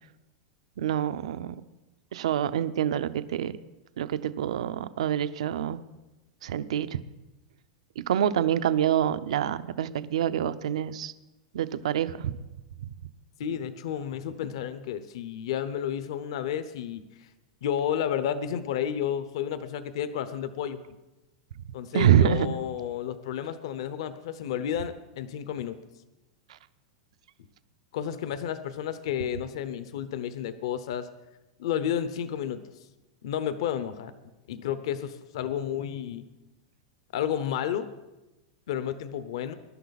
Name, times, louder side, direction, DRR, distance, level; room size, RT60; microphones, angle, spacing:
voice 1, 0.8-1.6 2.1-3.5 4.0-5.8 6.4-6.9 8.0-11.1 11.5-12.4 21.9-22.5, right 10 dB, 80° right, 13 dB, 0.7 m, -26 dB
voice 2, 13.4-17.3 17.6-20.8 21.7-25.8 27.9-31.1 31.6-32.6 33.2-34.1 34.5-36.2 37.1-37.9 38.7-39.5, left 9 dB, 55° left, 12 dB, 0.8 m, -31 dB
21.0 x 11.5 x 4.1 m, 1.1 s
supercardioid pair, 180°, 3 cm